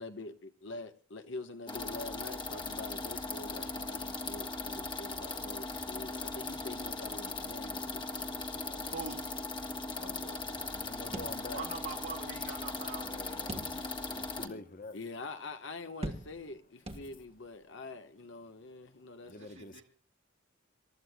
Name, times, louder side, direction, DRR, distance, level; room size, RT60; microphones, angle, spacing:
voice 1, 0.0-8.9 10.0-11.1 14.4-14.6 14.9-19.4, left 3 dB, 65° left, 1.3 m, -46 dB
sound 1, 1.7-14.5, left 3 dB, 25° left, 1.4 m, -39 dB
voice 2, 8.9-9.2 11.5-13.4 19.4-19.8, right 4 dB, 70° right, 2.1 m, -43 dB
voice 3, 10.5-11.7 13.0-15.0 19.3-19.8, left 2 dB, 45° left, 1.0 m, -47 dB
sound 2, 11.1-12.0 12.3-12.4 13.5-14.1 14.6-14.7 16.0-16.6 16.9-17.5, right 1 dB, 30° right, 1.5 m, -42 dB
27.0 x 13.5 x 2.3 m
head